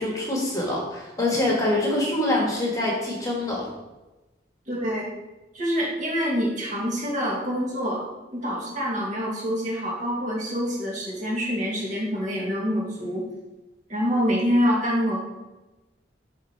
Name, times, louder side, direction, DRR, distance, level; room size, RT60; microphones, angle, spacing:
voice 1, 0.0-3.7, left 1 dB, 20° left, -2 dB, 1.5 m, -25 dB
voice 2, 4.7-5.1 5.5-8.0 8.3-13.2 13.9-15.2, equal, 45° right, -3 dB, 2.1 m, -26 dB
7.9 x 3.6 x 5.5 m, 1.1 s
head